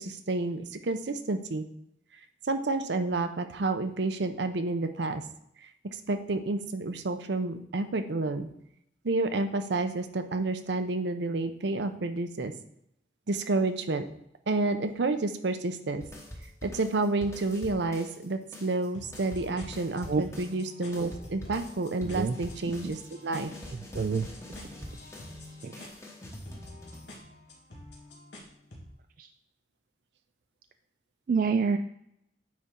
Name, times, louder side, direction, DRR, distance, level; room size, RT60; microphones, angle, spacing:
voice 1, 0.0-1.6 2.5-5.2 6.1-8.5 9.0-12.5 13.3-14.1 14.5-16.0 16.6-23.5, right 2 dB, 80° right, 8 dB, 0.7 m, -30 dB
sound 1, 16.0-18.3 18.5-27.5, left 1 dB, 15° left, 1.1 m, -45 dB
sound 2, 18.9-28.9, left 1 dB, 85° left, 1.8 m, -48 dB
voice 2, 22.0-22.4 22.8-22.9 23.9-24.3 25.6-25.9 29.2-29.3 31.3-31.8, right 5 dB, 50° right, 7 dB, 0.3 m, -27 dB
9.4 x 4.2 x 3.7 m, 0.76 s
head